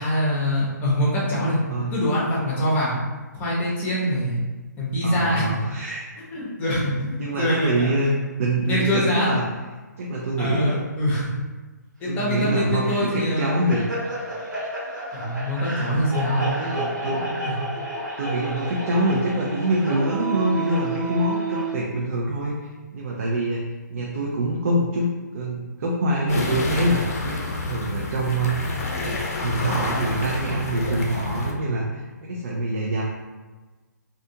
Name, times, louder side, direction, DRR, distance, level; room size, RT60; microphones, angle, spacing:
voice 1, 0.0-1.6 1.9-3.0 3.3-4.4 4.8-5.4 6.3-8.2 8.6-9.3 10.4-11.3 12.0-13.6 15.1-16.4 17.4-17.6, left 1 dB, 15° left, -6 dB, 0.7 m, -24 dB
voice 2, 5.0-6.0 7.2-9.4 10.0-10.8 12.1-13.8 16.6-17.4 18.2-23.6 23.9-33.0, right 1 dB, 50° right, -2 dB, 0.4 m, -25 dB
sound 1, 12.8-21.8, right 2 dB, 85° right, 1.1 m, -31 dB
sound 2, 26.3-31.5, left 3 dB, 50° left, 0.5 m, -29 dB
2.5 x 2.3 x 2.6 m, 1.3 s
figure-of-eight pair, 140°, 10 cm